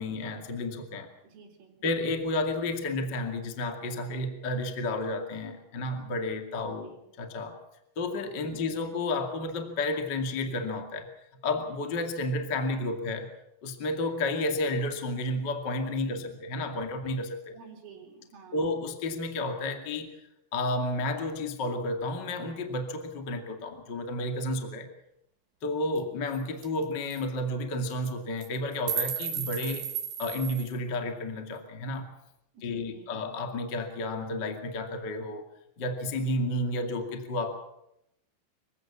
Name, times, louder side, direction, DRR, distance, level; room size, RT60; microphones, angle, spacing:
voice 1, 0.0-1.1 1.8-7.6 8.0-11.1 11.4-13.3 13.6-17.6 18.5-20.1 20.5-24.9 25.6-29.9 30.2-32.1 32.6-35.4 35.8-37.6, left 2 dB, 35° left, 5 dB, 1.7 m, -31 dB
voice 2, 1.2-1.8 6.6-7.1 8.5-8.9 16.1-16.4 17.5-18.8 32.5-33.3, right 6 dB, 85° right, -1 dB, 6.6 m, -51 dB
sound 1, 26.0-26.1 26.3-26.4 26.6-26.8 27.1-27.2 27.9-28.1 28.4-30.7, right 9 dB, 65° right, 4.4 m, -34 dB
27.0 x 16.0 x 7.4 m, 0.81 s
omnidirectional pair, 5.6 m